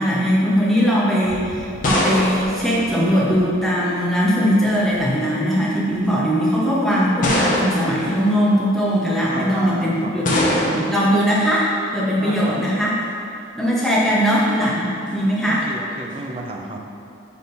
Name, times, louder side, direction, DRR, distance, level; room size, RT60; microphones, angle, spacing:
voice 1, 0.0-12.9 13.6-15.6, equal, ahead, -7 dB, 0.8 m, -20 dB
sound 1, 1.2-3.6 4.6-5.1 5.9-6.0 7.2-8.0 10.2-11.0, left 1 dB, 40° left, 0.8 m, -23 dB
voice 2, 9.2-10.1 12.2-12.6 15.5-16.9, right 2 dB, 30° right, 1 dB, 0.4 m, -32 dB
6.6 x 3.6 x 3.9 m, 2.6 s
head